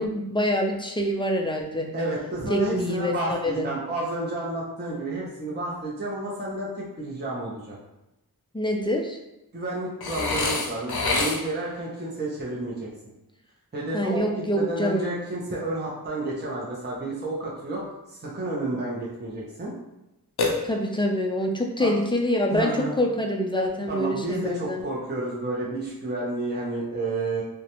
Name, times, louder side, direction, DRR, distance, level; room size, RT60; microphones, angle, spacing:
voice 1, 0.0-1.9 2.5-3.7 8.5-9.2 13.9-15.1 20.6-24.8, equal, 15° left, 1 dB, 0.3 m, -25 dB
voice 2, 1.9-7.8 9.5-12.9 13.7-14.2 14.5-19.7 21.8-21.9 22.5-22.9 23.9-27.4, right 2 dB, 25° right, -5 dB, 0.6 m, -31 dB
Burping eructation, 10.0-11.7 20.4-21.2, left 3 dB, 80° left, 0.5 m, -27 dB
2.3 x 2.1 x 2.8 m, 0.93 s
wide cardioid pair, 45°, 38 cm